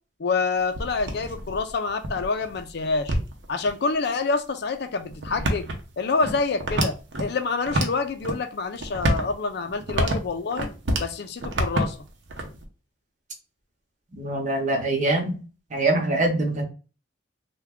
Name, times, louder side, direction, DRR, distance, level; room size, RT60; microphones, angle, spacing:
voice 1, 0.2-3.2 3.5-5.7 6.0-10.7 11.0-12.0, left 4 dB, 60° left, 0.5 m, -27 dB
sound 1, 0.6-3.7 4.3-4.4 5.1-7.3 7.6-8.4 8.7-11.1 11.4-12.7, right 1 dB, 70° right, 0.7 m, -28 dB
voice 2, 14.1-15.4 15.7-16.6, right 2 dB, 40° right, 0.9 m, -24 dB
3.3 x 2.2 x 3.5 m
head